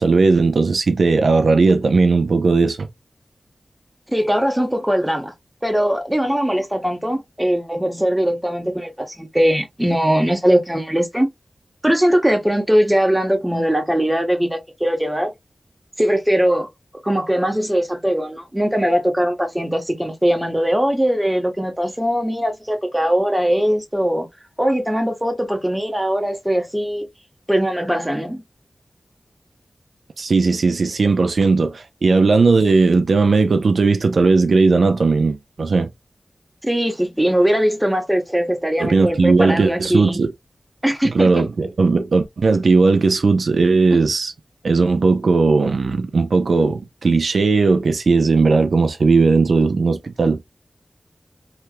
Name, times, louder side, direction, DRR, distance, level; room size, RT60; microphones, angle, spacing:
voice 1, 0.0-2.9 30.2-35.9 38.8-40.3 41.0-44.3 44.6-50.4, right 4 dB, 80° right, 0.5 m, -17 dB
voice 2, 4.1-5.3 5.6-11.3 11.8-15.3 16.0-16.7 17.0-24.3 24.6-27.1 27.5-28.4 36.6-40.2 40.8-41.3, equal, 10° right, 1.0 m, -20 dB
3.2 x 3.0 x 2.2 m
wide cardioid pair, 90°, 0 cm